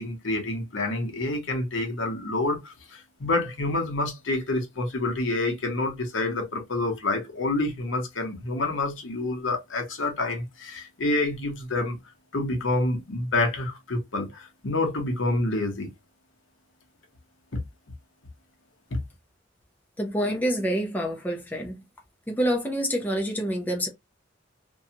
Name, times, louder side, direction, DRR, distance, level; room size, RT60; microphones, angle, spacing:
voice 1, 0.0-12.0 12.3-15.9 17.5-17.6 18.9-19.0, left 2 dB, 70° left, 0.9 m, -28 dB
voice 2, 20.0-21.8 22.3-23.9, equal, 10° left, 0.5 m, -27 dB
2.6 x 2.3 x 2.7 m
head